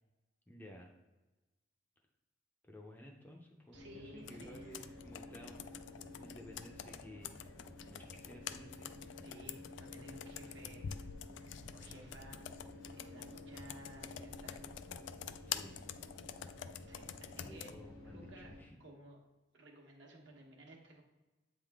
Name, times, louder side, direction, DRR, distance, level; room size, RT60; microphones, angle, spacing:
voice 1, 0.5-0.9 2.6-5.7 6.2-7.4 7.8-8.9 15.4-15.8 17.4-18.8, equal, 10° left, 0 dB, 0.5 m, -54 dB
sound 1, 3.7-18.6, left 1 dB, 90° left, 1.6 m, -52 dB
voice 2, 3.7-4.8 9.2-11.0 11.4-12.4 12.8-14.6 15.2-15.4 16.9-17.7 18.0-18.5 18.8-19.2 19.5-21.0, right 1 dB, 65° right, 0 dB, 1.2 m, -56 dB
Computer keyboard, 4.3-17.8, left 9 dB, 65° left, 0.3 m, -47 dB
8.1 x 3.6 x 3.4 m, 1.1 s
head